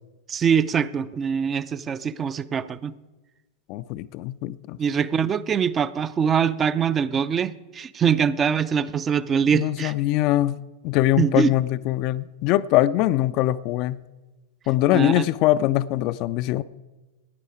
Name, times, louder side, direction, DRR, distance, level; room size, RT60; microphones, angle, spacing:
voice 1, 0.3-2.9 4.8-9.9 11.2-11.5 14.9-15.3, right 7 dB, 25° right, 0.4 m, -23 dB
voice 2, 3.7-4.8 9.5-14.0 14.7-16.6, left 15 dB, 40° left, 0.4 m, -22 dB
16.0 x 9.7 x 4.8 m
figure-of-eight pair, 90°, 0 cm